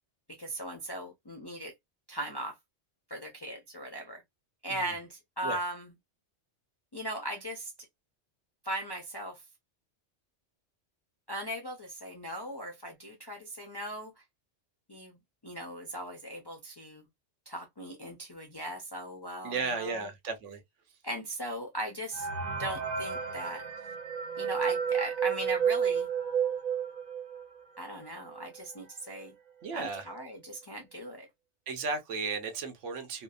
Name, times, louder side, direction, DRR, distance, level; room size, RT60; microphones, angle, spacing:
voice 1, 0.4-1.7 2.1-2.6 3.1-4.2 4.6-5.9 6.9-7.7 8.6-9.4 11.3-14.1 14.9-17.1 17.5-20.1 21.0-22.3 22.6-23.6 24.4-26.1 27.8-29.3 29.7-31.3, right 1 dB, 40° left, 0.3 m, -38 dB
voice 2, 19.4-20.6 29.6-30.1 31.7-33.2, right 4 dB, 90° right, 1.0 m, -34 dB
sound 1, 22.1-27.6 28.0-28.1 28.3-28.5 29.2-29.3 29.7-30.0, right 7 dB, 55° right, 0.5 m, -31 dB
2.7 x 2.1 x 2.2 m
omnidirectional pair, 1.2 m